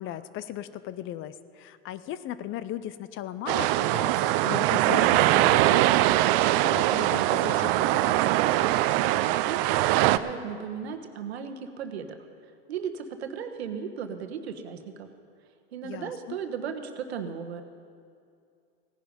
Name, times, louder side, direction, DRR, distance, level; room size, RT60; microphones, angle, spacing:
voice 1, 0.0-8.2 15.8-16.4, left 12 dB, 40° left, 15 dB, 0.6 m, -37 dB
sound 1, 3.5-10.2, right 15 dB, 60° right, 0.6 m, -22 dB
voice 2, 9.5-12.2 12.7-15.1 15.7-17.6, right 7 dB, 85° right, 7 dB, 1.2 m, -36 dB
17.0 x 10.5 x 5.2 m, 2.4 s
hypercardioid pair, 105°, 31 cm